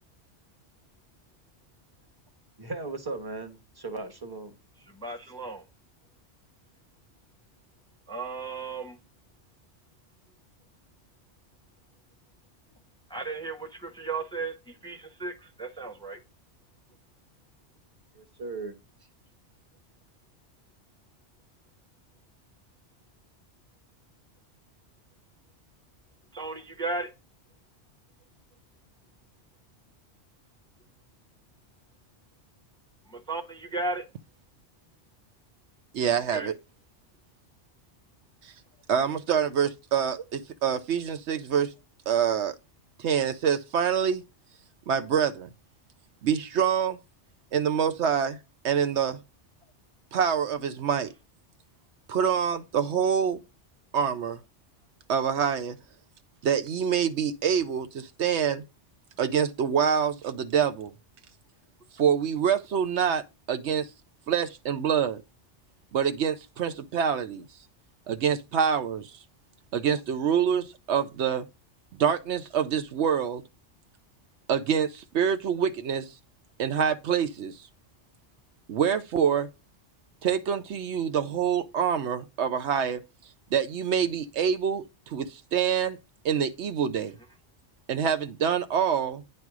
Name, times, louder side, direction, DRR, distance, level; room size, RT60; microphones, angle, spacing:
voice 1, 2.6-4.6 18.1-18.7, right 3 dB, 20° right, 1.1 m, -37 dB
voice 2, 4.9-5.6 8.1-9.0 13.1-16.2 26.3-27.1 33.1-34.0 36.3-36.5, right 3 dB, 5° left, 0.8 m, -35 dB
voice 3, 35.9-36.6 38.9-41.7 42.1-42.5 43.0-44.2 44.9-45.5 46.2-47.0 47.5-48.4 48.6-49.2 50.1-51.1 52.1-53.4 53.9-54.4 55.1-55.8 56.4-58.6 59.2-60.9 62.0-63.9 64.3-65.2 65.9-67.4 68.1-69.1 69.7-71.5 72.0-73.4 74.5-76.1 76.6-77.5 78.7-79.5 80.2-83.0 83.5-86.0 86.2-87.1 87.9-89.2, right 8 dB, 75° right, 1.0 m, -26 dB
9.2 x 3.2 x 5.9 m
omnidirectional pair, 1.2 m